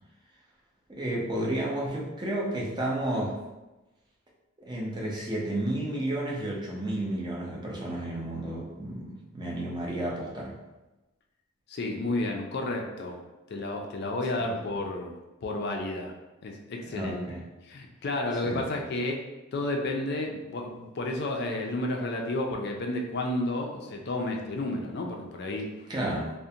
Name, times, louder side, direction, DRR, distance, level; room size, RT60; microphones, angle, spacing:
voice 1, 0.9-3.4 4.7-10.6 14.4-14.5 16.8-17.4 18.4-18.7 25.9-26.3, right 1 dB, 20° right, -4 dB, 0.5 m, -32 dB
voice 2, 11.7-13.2 13.5-15.1 15.4-16.1 16.4-17.3 17.7-19.2 19.5-25.7, left 2 dB, 50° left, 1 dB, 0.3 m, -31 dB
2.5 x 2.1 x 2.7 m, 1.0 s
head